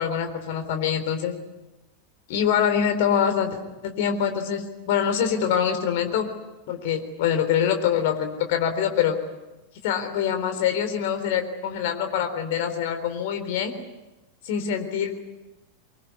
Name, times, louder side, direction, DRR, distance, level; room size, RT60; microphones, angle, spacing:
voice 1, 0.0-1.4 2.3-3.6 3.8-6.3 6.7-9.2 9.8-13.7 14.4-15.2, left 8 dB, 50° left, 6 dB, 3.9 m, -24 dB
25.0 x 23.5 x 9.8 m, 1.1 s
figure-of-eight pair, 90°, 0 cm